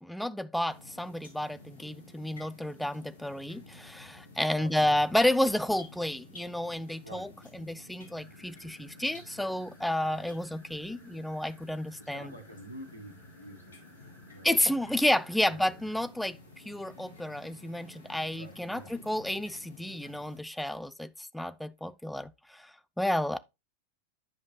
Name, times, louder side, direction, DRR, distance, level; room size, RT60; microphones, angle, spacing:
voice 1, 0.0-12.3 14.4-16.4 16.7-22.7 23.0-23.4, left 1 dB, ahead, 0.4 m, -31 dB
sound 1, 0.6-20.4, left 2 dB, 65° left, 2.6 m, -52 dB
voice 2, 4.6-4.9 7.0-7.3 12.0-13.7 14.0-14.6 15.5-15.7 18.3-19.0, right 1 dB, 85° right, 1.6 m, -48 dB
sound 2, 8.1-16.0, equal, 20° left, 3.8 m, -62 dB
10.5 x 5.1 x 2.2 m
figure-of-eight pair, 90°, 0 cm